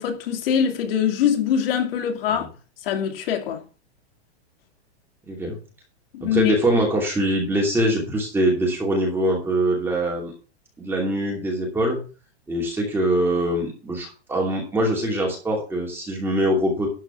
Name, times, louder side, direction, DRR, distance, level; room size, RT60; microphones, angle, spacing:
voice 1, 0.0-2.5 2.8-3.6 6.1-6.6, left 8 dB, 60° left, 2.7 m, -23 dB
voice 2, 5.3-5.6 6.2-10.3 10.8-12.0 12.5-16.9, right 1 dB, 5° right, 2.7 m, -23 dB
12.0 x 4.9 x 6.9 m
supercardioid pair, 170°, 33 cm